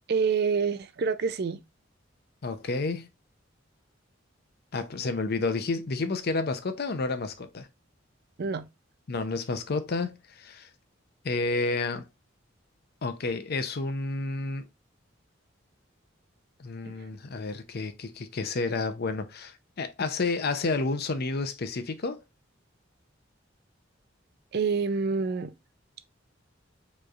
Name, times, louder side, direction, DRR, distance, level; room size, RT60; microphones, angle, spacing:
voice 1, 0.1-1.6 8.4-8.7 16.8-17.1 24.5-25.5, right 5 dB, 55° right, 0.4 m, -27 dB
voice 2, 2.4-3.1 4.7-7.7 9.1-10.7 11.2-12.1 13.0-14.6 16.6-22.2, left 3 dB, 55° left, 0.6 m, -30 dB
4.9 x 3.1 x 2.4 m
head